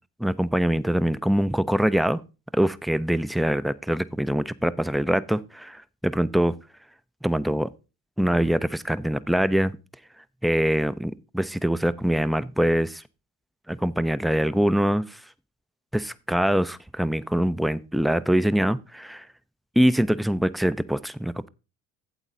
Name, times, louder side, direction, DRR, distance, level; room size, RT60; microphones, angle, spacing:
voice 1, 0.2-2.2 2.5-6.5 7.2-7.7 8.2-9.8 10.4-13.0 13.7-15.2 15.9-19.2 19.8-21.5, equal, ahead, 0.3 m, -24 dB
8.2 x 8.1 x 3.7 m
hypercardioid pair, 70°, 40 cm